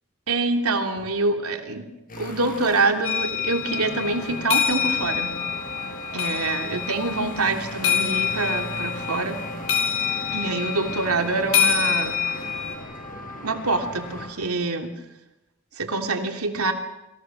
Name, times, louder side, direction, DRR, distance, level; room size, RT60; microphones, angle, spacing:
voice 1, 0.3-1.9 2.2-5.4 6.1-9.4 10.3-12.2 13.4-14.9 15.8-16.7, right 3 dB, 90° right, 4 dB, 3.1 m, -25 dB
sound 1, 2.1-14.3, left 1 dB, 40° left, 6.9 m, -37 dB
sound 2, 3.0-12.7, left 8 dB, 70° left, 5.7 m, -26 dB
28.5 x 25.5 x 6.3 m, 0.94 s
head